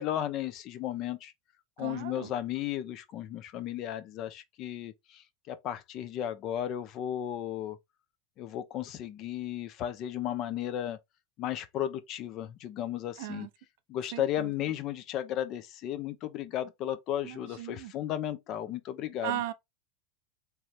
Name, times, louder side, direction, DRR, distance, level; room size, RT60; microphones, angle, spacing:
voice 1, 0.0-1.3 1.8-7.8 8.4-11.0 11.4-13.5 13.9-19.4, left 11 dB, 45° left, 0.8 m, -34 dB
voice 2, 1.8-2.3 13.2-13.5 14.1-14.5 17.2-17.9 19.2-19.5, right 12 dB, 70° right, 0.7 m, -37 dB
3.5 x 3.2 x 4.3 m
supercardioid pair, 125°, 0 cm